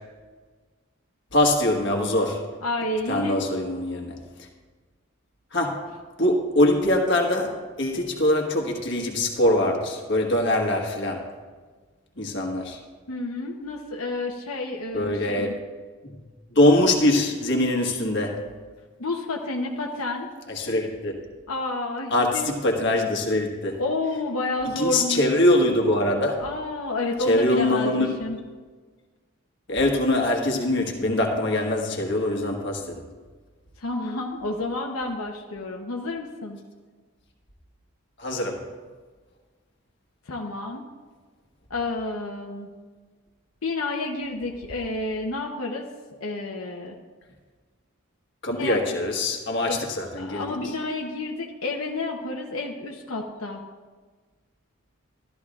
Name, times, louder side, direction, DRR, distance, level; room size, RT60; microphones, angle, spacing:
voice 1, 1.3-2.5 3.1-4.2 5.5-5.9 6.2-11.3 12.2-12.8 14.9-15.5 16.0-16.1 16.5-18.4 20.5-21.2 22.1-23.8 24.7-26.4 27.2-28.2 29.7-33.1 38.2-38.7 48.4-50.5, left 1 dB, 55° left, 1 dB, 1.4 m, -23 dB
voice 2, 2.6-3.4 13.1-15.6 19.0-20.3 21.5-22.5 23.8-25.2 26.4-28.4 33.8-36.6 40.3-40.8 41.7-42.7 43.6-45.9 46.2-47.0 48.5-49.0 49.7-49.8 50.2-53.6, left 2 dB, 85° left, 0 dB, 0.9 m, -30 dB
13.5 x 13.0 x 2.4 m, 1.4 s
head